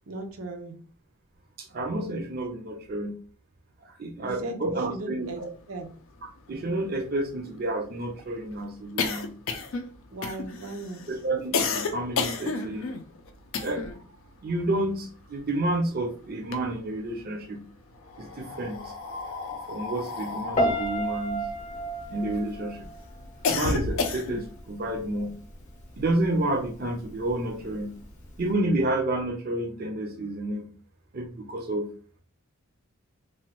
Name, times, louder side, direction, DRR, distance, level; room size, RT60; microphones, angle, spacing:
voice 1, 0.1-0.7 4.2-5.4 5.7-5.9 10.1-11.0, right 2 dB, 85° right, 3 dB, 0.6 m, -37 dB
voice 2, 1.6-3.1 3.8-5.5 6.5-9.3 11.1-12.9 13.6-13.8 14.4-17.6 18.2-18.8 19.5-21.4 22.1-22.9 23.5-25.3 26.0-28.0 28.4-30.7 31.1-31.9, right 1 dB, 45° right, 3 dB, 0.5 m, -30 dB
sound 1, 5.9-6.0 6.2-6.3 6.6-14.1 14.4-15.9 16.3-17.2 18.0-22.4 22.9-24.6, left 4 dB, 70° left, 0.4 m, -32 dB
Piano, 20.6-23.7 23.9-24.4, right 1 dB, 35° left, 0.7 m, -30 dB
3.0 x 2.2 x 2.9 m, 0.41 s
head